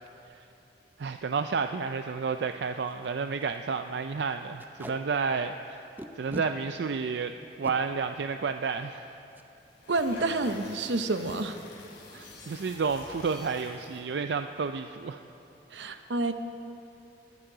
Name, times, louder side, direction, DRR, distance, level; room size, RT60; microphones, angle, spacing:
Packing tape duct tape, 0.9-1.1 1.6-1.7 1.9-2.0 2.5-2.6 2.9-3.1 3.4-3.6 4.6-5.0 6.0-6.5 7.4-7.8 9.3-9.5 9.8-10.0 10.3-10.7, right 1 dB, 10° right, 0.6 m, -41 dB
voice 1, 1.0-5.8 6.2-7.3 7.6-9.1 12.1-15.2 15.8-16.0, right 5 dB, 70° right, 8 dB, 0.4 m, -31 dB
sound 1, 9.7-14.1, left 2 dB, 70° left, 3.3 m, -48 dB
voice 2, 9.9-11.6 15.7-16.3, right 2 dB, 90° right, 8 dB, 0.8 m, -29 dB
20.5 x 13.5 x 3.9 m, 2.9 s
head